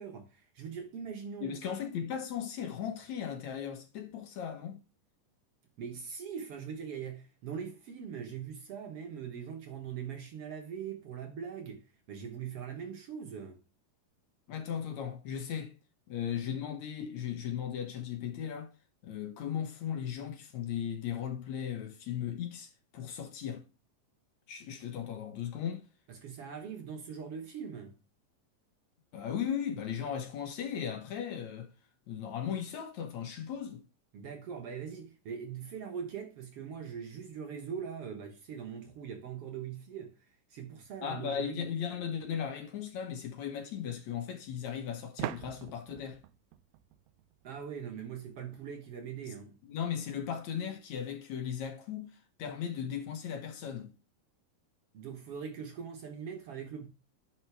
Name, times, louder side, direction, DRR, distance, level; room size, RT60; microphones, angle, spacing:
voice 1, 0.0-1.6 5.8-13.6 26.1-28.0 34.1-40.2 40.5-41.6 47.4-49.6 54.9-56.9, right 7 dB, 60° right, 1.8 m, -41 dB
voice 2, 1.4-4.8 14.5-15.7 16.1-18.7 19.0-23.7 24.5-25.9 29.1-31.7 32.1-33.8 41.0-46.2 49.6-53.9, left 8 dB, 65° left, 2.3 m, -37 dB
sound 1, 42.2-42.3 45.2-47.8, right 14 dB, 90° right, 2.3 m, -42 dB
10.5 x 4.6 x 3.3 m
omnidirectional pair, 3.9 m